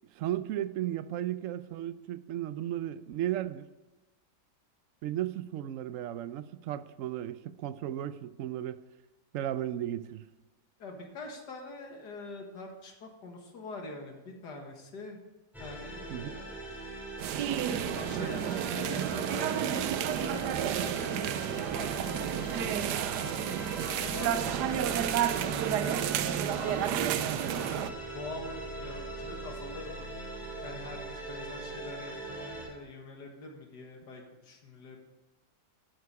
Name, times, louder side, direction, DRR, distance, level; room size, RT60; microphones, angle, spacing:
voice 1, 0.1-3.7 5.0-8.8 9.3-10.2 16.1-16.4, right 12 dB, 65° right, 0.8 m, -35 dB
voice 2, 10.8-15.2 15.6-16.4 17.9-20.4 20.8-22.7 23.2-25.8 26.6-27.1 27.5-30.1 30.6-35.0, left 2 dB, 80° left, 2.2 m, -44 dB
sound 1, 15.5-32.7, right 1 dB, ahead, 3.4 m, -41 dB
sound 2, 17.2-27.9, right 10 dB, 85° right, 1.2 m, -31 dB
13.0 x 9.5 x 4.8 m
omnidirectional pair, 1.8 m